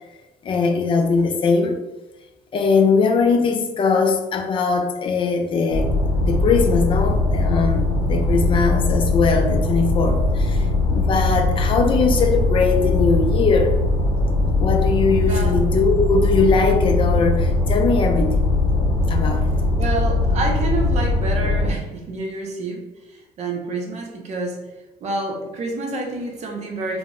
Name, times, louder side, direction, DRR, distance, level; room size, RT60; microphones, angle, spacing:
voice 1, 0.4-1.8 2.5-5.9 6.2-13.8 14.6-18.5 19.1-19.5, left 4 dB, 35° left, 4 dB, 0.3 m, -20 dB
sound 1, 5.7-21.7, left 2 dB, 75° left, 0.6 m, -20 dB
voice 2, 19.8-22.8 23.4-24.7 25.0-27.0, right 2 dB, 50° right, 1 dB, 0.6 m, -28 dB
2.0 x 2.0 x 3.6 m, 1.0 s
cardioid pair, 125°, 15 cm